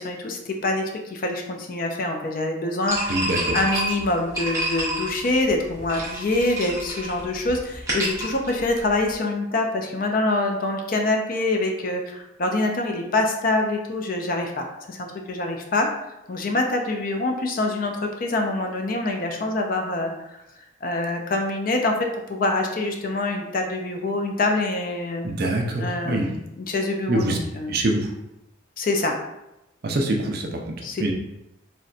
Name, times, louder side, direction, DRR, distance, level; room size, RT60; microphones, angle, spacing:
voice 1, 0.0-3.3 3.5-15.9 16.3-20.4 20.8-25.3 25.8-27.7 28.8-29.1 30.8-31.1, left 2 dB, 40° left, 3 dB, 0.4 m, -25 dB
sound 1, 2.9-9.1, right 1 dB, 15° right, 0.7 m, -29 dB
voice 2, 3.1-3.6 25.2-26.3 27.1-27.4 27.7-28.1 29.8-31.1, right 1 dB, 50° right, 2 dB, 0.4 m, -24 dB
4.0 x 2.2 x 2.4 m, 0.89 s
head